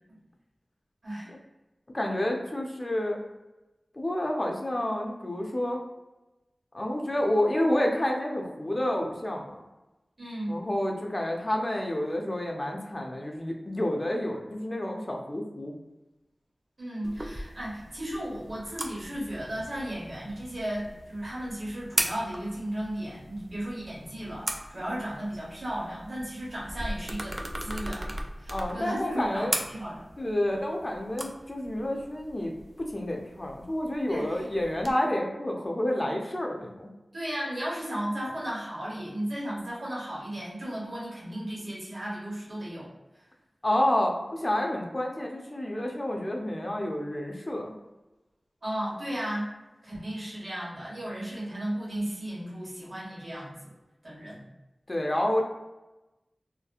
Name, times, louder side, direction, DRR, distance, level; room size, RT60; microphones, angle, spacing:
voice 1, 1.9-3.2 3.9-5.8 6.7-9.6 10.5-15.7 28.5-29.5 30.2-32.5 32.8-36.9 43.6-47.7 54.9-55.4, left 1 dB, 40° left, 1 dB, 0.5 m, -29 dB
voice 2, 10.2-10.5 16.8-30.0 34.1-34.3 37.1-42.9 48.6-49.5 49.8-53.7 54.0-54.4, right 1 dB, 65° right, -6 dB, 1.2 m, -35 dB
sound 1, 17.0-34.9, right 1 dB, 40° right, 0.3 m, -39 dB
2.8 x 2.1 x 2.3 m, 1.0 s
wide cardioid pair, 45°, 0 cm